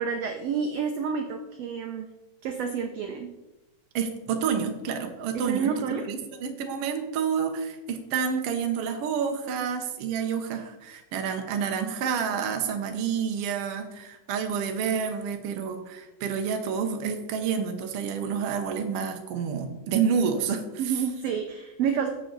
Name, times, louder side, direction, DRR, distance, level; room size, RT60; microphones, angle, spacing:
voice 1, 0.0-2.1 2.4-3.3 5.3-6.0 20.8-22.1, right 6 dB, 85° right, 5 dB, 1.4 m, -29 dB
voice 2, 3.9-5.7 6.1-20.6, right 6 dB, 65° right, 5 dB, 1.5 m, -29 dB
9.3 x 7.6 x 3.9 m, 1.0 s
omnidirectional pair, 3.7 m